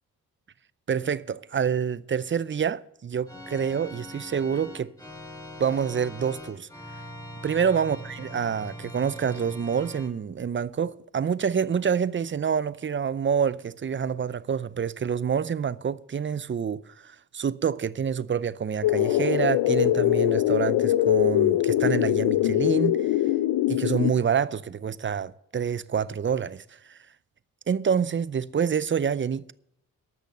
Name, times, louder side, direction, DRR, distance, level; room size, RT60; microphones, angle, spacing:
voice 1, 0.9-4.9 5.6-6.7 7.4-23.0 23.7-27.0 27.7-29.5, right 7 dB, 30° right, 0.6 m, -27 dB
Organ, 3.3-10.1, equal, 10° left, 3.6 m, -42 dB
sound 1, 18.8-24.1, left 13 dB, 85° left, 0.5 m, -22 dB
13.5 x 6.3 x 6.7 m
supercardioid pair, 60°, 37 cm